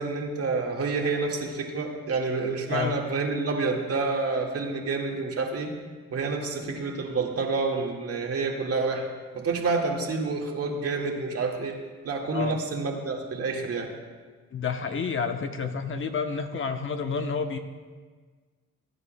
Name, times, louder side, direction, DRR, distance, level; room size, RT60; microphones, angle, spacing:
voice 1, 0.0-5.7 6.1-9.1 9.3-11.8 12.0-13.9, right 4 dB, 50° right, 0 dB, 1.8 m, -28 dB
voice 2, 2.7-3.0 12.3-12.6 14.5-17.6, left 5 dB, 40° left, 6 dB, 0.8 m, -29 dB
20.5 x 9.6 x 2.2 m, 1.4 s
cardioid pair, 90°, 30 cm